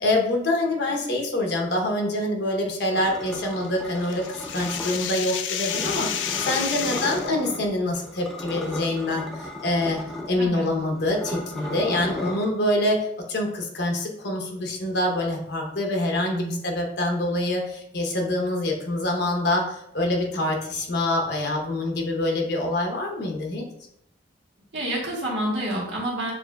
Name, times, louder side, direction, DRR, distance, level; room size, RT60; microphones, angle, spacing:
voice 1, 0.0-10.0 10.3-23.6, left 1 dB, 65° left, 1 dB, 0.8 m, -25 dB
sound 1, 2.9-5.1 5.6-7.7 8.0-12.5, left 1 dB, ahead, 0.5 m, -35 dB
sound 2, 3.5-7.3, left 9 dB, 90° left, 0.4 m, -30 dB
voice 2, 16.2-16.6 24.7-26.3, right 1 dB, 90° right, -4 dB, 1.5 m, -28 dB
6.8 x 2.6 x 2.2 m, 0.75 s
head